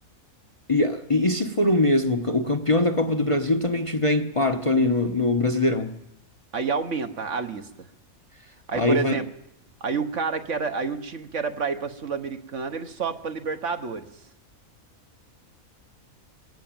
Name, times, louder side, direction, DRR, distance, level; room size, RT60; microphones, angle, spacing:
voice 1, 0.7-6.0 8.7-9.2, left 2 dB, 25° left, 4 dB, 0.9 m, -22 dB
voice 2, 6.5-7.7 8.7-9.2 9.8-14.1, right 5 dB, 60° right, 7 dB, 1.5 m, -29 dB
20.0 x 17.5 x 9.0 m, 0.87 s
omnidirectional pair, 1.5 m